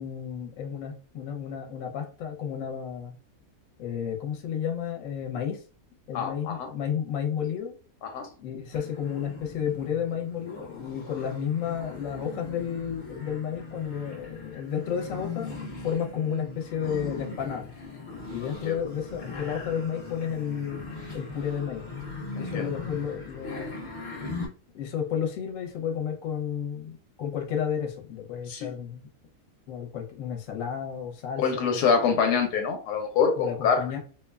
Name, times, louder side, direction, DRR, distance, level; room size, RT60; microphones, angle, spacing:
voice 1, 0.0-3.2 3.8-5.6 6.1-7.8 8.4-15.6 15.8-17.7 18.3-20.9 21.1-21.9 22.3-23.8 24.7-29.1 29.7-31.8 33.4-34.0, left 8 dB, 65° left, 2 dB, 1.0 m, -32 dB
voice 2, 6.1-6.7 8.0-8.3 18.7-18.8 22.4-22.7 28.5-28.7 31.4-33.8, left 6 dB, 90° left, 4 dB, 1.2 m, -25 dB
sound 1, 8.7-24.5, left 3 dB, 40° left, 0.6 m, -39 dB
2.7 x 2.2 x 2.2 m, 0.38 s
omnidirectional pair, 1.7 m